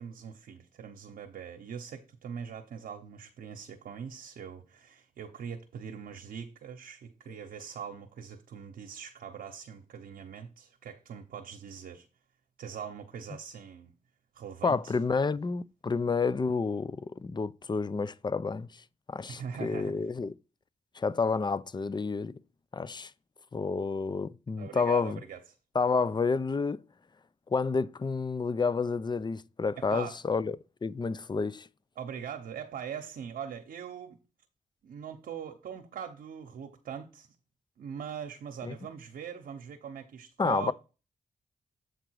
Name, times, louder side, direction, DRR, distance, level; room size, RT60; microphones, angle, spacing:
voice 1, 0.0-12.1 12.6-13.9 14.3-14.9 19.3-19.9 24.6-25.4 29.8-30.2 32.0-34.2 34.8-37.3 37.8-40.7, right 7 dB, 85° right, 0.9 m, -42 dB
voice 2, 14.6-20.4 20.9-22.4 22.7-23.1 23.5-25.2 25.7-26.8 27.5-31.7 38.6-38.8 40.4-40.7, left 4 dB, 30° left, 0.5 m, -30 dB
8.0 x 3.8 x 4.7 m
cardioid pair, 50°, 15 cm